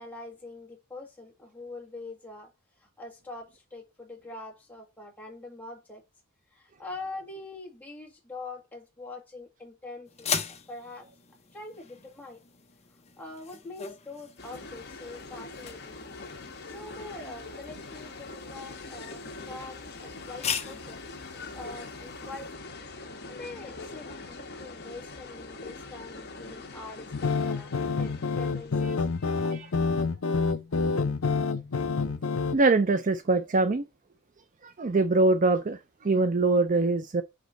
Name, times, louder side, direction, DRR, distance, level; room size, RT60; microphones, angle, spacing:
voice 1, 0.0-2.5 2.8-6.0 6.5-11.1 11.5-12.4 13.2-16.0 16.7-21.0 21.5-22.6 23.3-27.7 28.0-29.0, left 2 dB, 10° left, 1.9 m, -44 dB
sound 1, 10.1-22.5, left 7 dB, 30° left, 0.8 m, -40 dB
sound 2, 14.4-29.8, left 3 dB, 50° left, 1.2 m, -43 dB
sound 3, 27.1-32.6, left 4 dB, 70° left, 0.7 m, -28 dB
voice 2, 32.5-33.8 34.6-37.2, right 3 dB, 35° right, 0.5 m, -23 dB
6.1 x 5.1 x 3.9 m
head